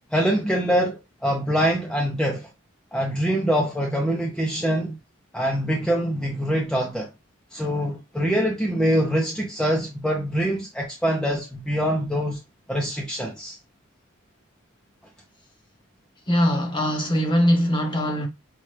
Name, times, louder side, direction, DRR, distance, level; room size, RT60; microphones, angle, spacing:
voice 1, 0.1-2.5 2.9-5.0 5.3-7.1 7.5-12.4 12.7-13.6, equal, 5° left, 0.6 m, -24 dB
voice 2, 16.3-18.3, equal, 25° left, 1.0 m, -21 dB
5.6 x 2.3 x 3.2 m
head